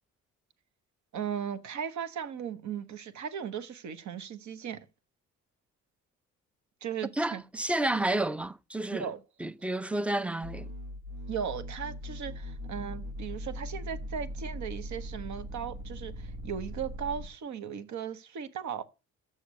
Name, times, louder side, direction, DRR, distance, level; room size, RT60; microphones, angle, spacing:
voice 1, 1.1-4.9 6.8-7.4 8.9-9.2 11.3-18.8, right 7 dB, 70° right, 1.2 m, -37 dB
voice 2, 7.2-9.1 9.4-10.7, right 1 dB, 5° right, 0.4 m, -30 dB
sound 1, 10.4-17.3, equal, 90° right, 1.2 m, -40 dB
7.0 x 6.7 x 6.3 m
cardioid pair, 90°, 30 cm